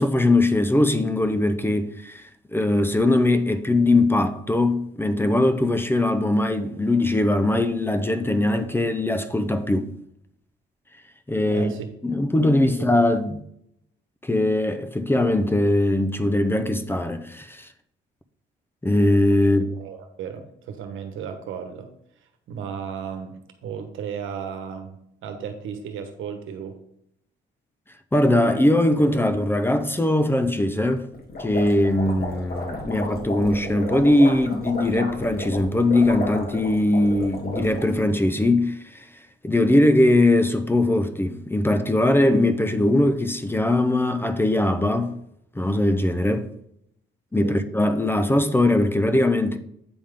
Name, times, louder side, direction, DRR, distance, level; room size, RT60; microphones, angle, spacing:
voice 1, 0.0-2.2 2.5-9.9 11.3-11.7 12.0-13.4 14.2-17.7 18.8-19.7 28.1-31.1 31.4-39.0 39.4-45.2 45.5-46.5 47.3-49.6, left 1 dB, 10° left, 0.6 m, -21 dB
voice 2, 11.5-11.9 12.7-13.1 19.6-21.9 22.5-23.3 23.6-26.8 29.0-29.1 47.4-47.6, right 7 dB, 80° right, 1.1 m, -35 dB
sound 1, 31.1-38.0, left 1 dB, 50° left, 2.0 m, -33 dB
8.7 x 3.6 x 5.1 m
cardioid pair, 90°, 20 cm